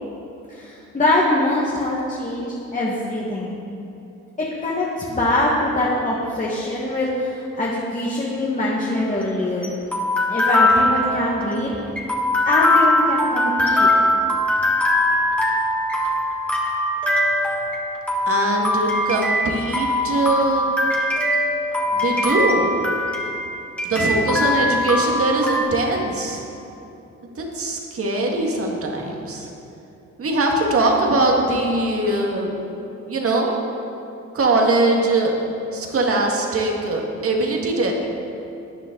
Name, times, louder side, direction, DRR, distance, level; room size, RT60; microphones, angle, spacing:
voice 1, 0.5-3.5 4.4-9.7 10.3-11.8 12.4-13.9, left 1 dB, 25° left, -5 dB, 1.7 m, -23 dB
sound 1, 8.9-25.6, left 1 dB, 5° left, 1.9 m, -21 dB
voice 2, 18.3-20.7 21.9-22.7 23.9-26.4 27.4-29.5 30.2-32.5 33.1-33.5 34.3-35.3 35.7-37.9, right 2 dB, 50° right, 0 dB, 1.9 m, -21 dB
13.5 x 9.2 x 3.9 m, 2.9 s
cardioid pair, 90°, 30 cm